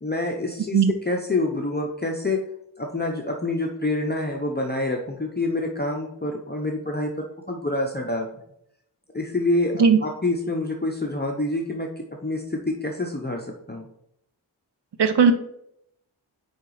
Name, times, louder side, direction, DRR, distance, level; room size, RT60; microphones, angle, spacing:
voice 1, 0.0-2.4 2.8-8.3 9.1-11.9 12.2-13.9, left 2 dB, 25° left, 1 dB, 0.8 m, -27 dB
voice 2, 15.0-15.3, right 6 dB, 75° right, 9 dB, 0.7 m, -16 dB
5.0 x 4.4 x 4.8 m, 0.76 s
wide cardioid pair, 40°, 41 cm